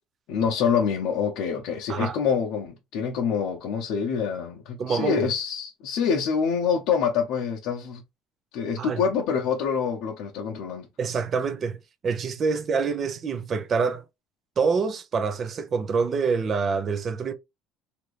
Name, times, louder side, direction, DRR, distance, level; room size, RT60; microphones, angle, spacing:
voice 1, 0.3-8.0 8.5-10.9, left 6 dB, 75° left, 0.7 m, -26 dB
voice 2, 4.8-5.3 8.8-9.0 11.0-11.8 12.0-14.0 14.6-17.3, right 5 dB, 40° right, 0.5 m, -26 dB
2.8 x 2.6 x 3.1 m
cardioid pair, 120°, 0 cm